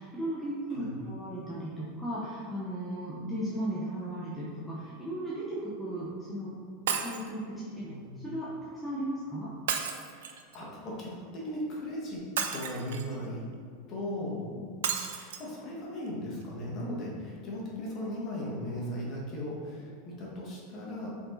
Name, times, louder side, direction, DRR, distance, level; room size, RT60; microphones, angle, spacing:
voice 1, 0.0-6.5 6.9-7.9 8.2-9.5 14.6-14.8 16.9-17.0, right 1 dB, 5° left, -9 dB, 1.0 m, -36 dB
Shatter, 6.9-7.3 9.7-10.6 12.4-13.1 14.8-15.4 16.1-16.2 16.4-16.5, right 7 dB, 90° right, 0.7 m, -32 dB
voice 2, 10.1-12.2 12.5-13.4 13.9-14.5 15.1-21.1, left 1 dB, 30° left, -4 dB, 1.8 m, -37 dB
7.1 x 4.8 x 4.1 m, 2.1 s
supercardioid pair, 170°, 0 cm